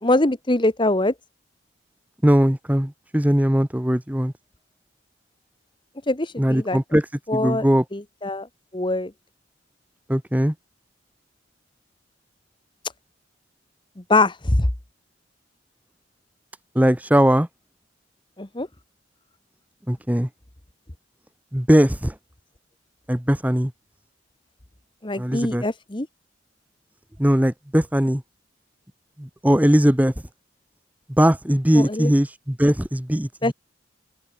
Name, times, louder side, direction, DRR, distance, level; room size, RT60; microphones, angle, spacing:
voice 1, 0.0-1.1 6.1-6.8 7.3-7.7 7.9-8.5 8.7-9.1 14.1-14.7 18.4-18.7 25.0-26.1 31.7-32.1 33.4-33.5, left 2 dB, 25° left, 1.3 m, -22 dB
voice 2, 2.2-4.3 6.4-7.0 7.3-7.8 10.1-10.5 16.7-17.5 19.9-20.3 21.5-22.1 23.1-23.7 25.2-25.6 27.2-28.2 29.4-30.1 31.2-33.5, equal, 10° right, 1.1 m, -19 dB
open air
head